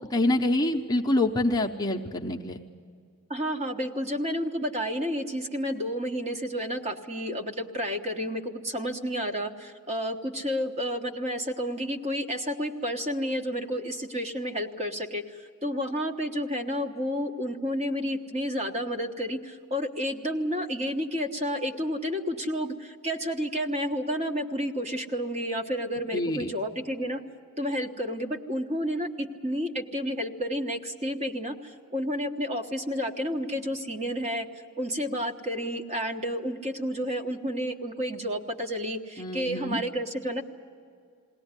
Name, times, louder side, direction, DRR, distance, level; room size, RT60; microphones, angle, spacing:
voice 1, 0.1-2.6 26.1-26.5 39.2-39.8, left 1 dB, 15° left, 1 dB, 0.7 m, -26 dB
voice 2, 3.3-27.2 27.6-34.5 34.8-40.4, equal, 30° right, 4 dB, 1.2 m, -31 dB
21.0 x 17.5 x 9.7 m, 2.3 s
head